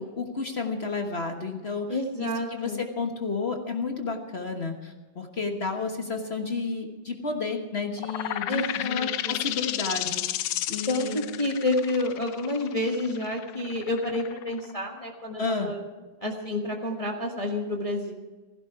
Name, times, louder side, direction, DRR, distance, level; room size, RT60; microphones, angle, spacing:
voice 1, 0.0-11.2 15.4-15.7, left 4 dB, 35° left, 4 dB, 1.4 m, -32 dB
voice 2, 1.9-2.8 8.5-9.4 10.9-15.8 16.2-18.1, left 2 dB, 20° left, 0 dB, 1.4 m, -29 dB
sound 1, 8.0-15.3, left 13 dB, 75° left, 1.3 m, -32 dB
16.5 x 15.0 x 4.7 m, 1.3 s
omnidirectional pair, 2.1 m